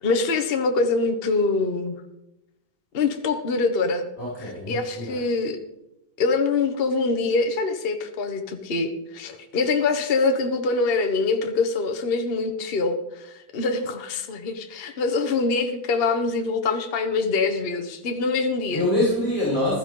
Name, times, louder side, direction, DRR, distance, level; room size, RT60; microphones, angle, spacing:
voice 1, 0.0-2.0 2.9-4.1 4.7-5.6 6.2-18.9, left 3 dB, 35° left, 5 dB, 1.1 m, -24 dB
voice 2, 4.2-5.1 18.7-19.8, left 1 dB, 15° left, -8 dB, 6.1 m, -25 dB
15.5 x 13.0 x 3.8 m, 0.88 s
omnidirectional pair, 2.0 m